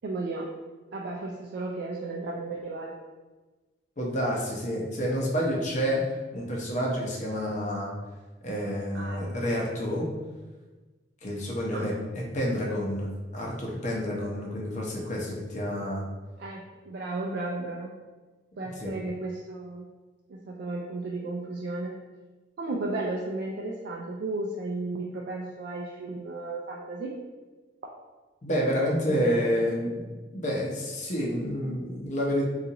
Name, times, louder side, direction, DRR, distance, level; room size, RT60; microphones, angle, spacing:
voice 1, 0.0-0.5 0.9-2.9 8.9-9.3 11.7-11.9 16.4-17.9 18.6-19.9 20.3-21.9 22.6-27.1 29.1-29.8, right 2 dB, 65° right, -2 dB, 0.4 m, -34 dB
voice 2, 4.0-7.9 8.4-10.1 11.2-16.0 18.6-18.9 28.4-30.0 30.3-32.4, equal, 45° left, -2 dB, 0.7 m, -29 dB
3.8 x 2.4 x 2.8 m, 1.3 s
head